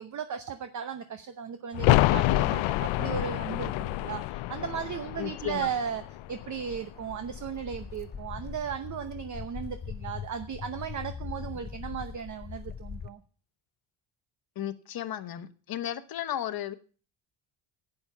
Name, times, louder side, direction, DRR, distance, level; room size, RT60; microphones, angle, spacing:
voice 1, 0.0-6.0 6.3-13.2, right 7 dB, 40° right, 0.8 m, -36 dB
sound 1, 1.7-7.3 7.6-7.7, left 17 dB, 80° left, 0.6 m, -28 dB
voice 2, 5.2-5.7 14.6-16.7, left 11 dB, 50° left, 1.0 m, -34 dB
Walk footsteps, 5.4-13.1, left 7 dB, 25° left, 0.5 m, -41 dB
11.5 x 8.8 x 5.9 m
cardioid pair, 150°, 46 cm